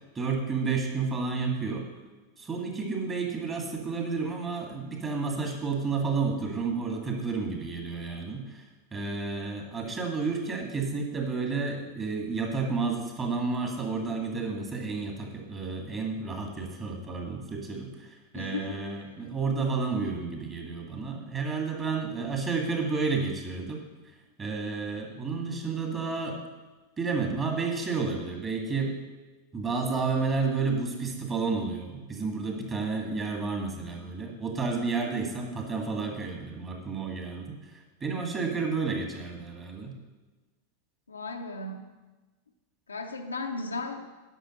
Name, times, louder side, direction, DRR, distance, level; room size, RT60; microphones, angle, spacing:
voice 1, 0.1-1.9 2.4-8.6 8.9-23.8 24.4-26.4 27.0-28.9 29.5-40.0, right 4 dB, 20° right, 2 dB, 2.2 m, -31 dB
voice 2, 18.3-19.1 41.1-41.9 42.9-44.0, left 3 dB, 75° left, 4 dB, 0.9 m, -36 dB
10.0 x 6.1 x 6.6 m, 1.2 s
figure-of-eight pair, 90°, 0 cm